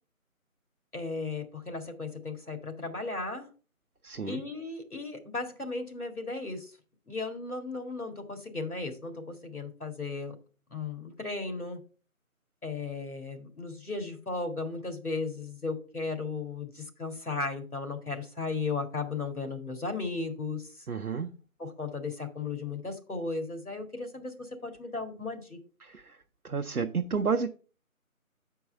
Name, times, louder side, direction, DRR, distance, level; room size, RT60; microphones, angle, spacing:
voice 1, 0.9-3.5 4.2-6.7 7.1-10.4 10.7-11.8 12.6-20.7 21.6-25.6, left 3 dB, 85° left, 5 dB, 2.1 m, -35 dB
voice 2, 4.0-4.4 20.9-21.3 25.8-26.2 26.4-27.5, right 5 dB, 90° right, 6 dB, 0.7 m, -31 dB
6.8 x 4.6 x 5.4 m, 0.38 s
figure-of-eight pair, 165°, 43 cm